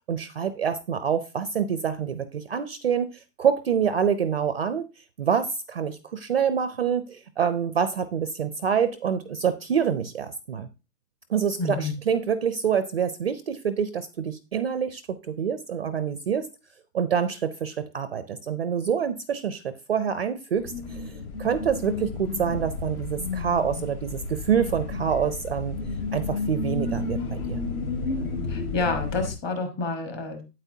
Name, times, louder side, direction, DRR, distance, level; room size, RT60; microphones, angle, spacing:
voice 1, 0.1-4.9 5.2-10.7 11.3-16.5 16.9-25.8 26.1-27.6, right 7 dB, 40° right, 11 dB, 0.4 m, -26 dB
voice 2, 11.6-11.9 28.5-30.4, left 3 dB, 20° left, 6 dB, 1.2 m, -28 dB
sound 1, 20.6-29.3, left 3 dB, 60° left, 2.4 m, -32 dB
8.7 x 8.2 x 2.7 m, 0.29 s
hypercardioid pair, 160°, 48 cm